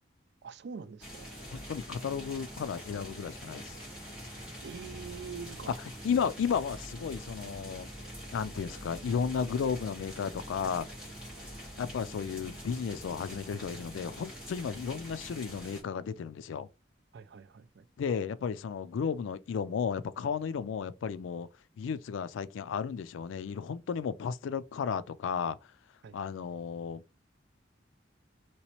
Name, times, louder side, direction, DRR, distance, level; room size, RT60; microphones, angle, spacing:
voice 1, 0.4-1.3 4.6-5.7 17.1-17.9 26.0-26.2, right 5 dB, 65° right, 0.4 m, -44 dB
sound 1, 1.0-15.8, equal, 5° right, 1.7 m, -45 dB
voice 2, 1.5-3.8 6.0-7.9 8.3-10.9 11.8-16.7 18.0-21.5 21.8-25.6 26.1-27.0, left 6 dB, 85° left, 0.3 m, -33 dB
3.0 x 3.0 x 2.9 m
head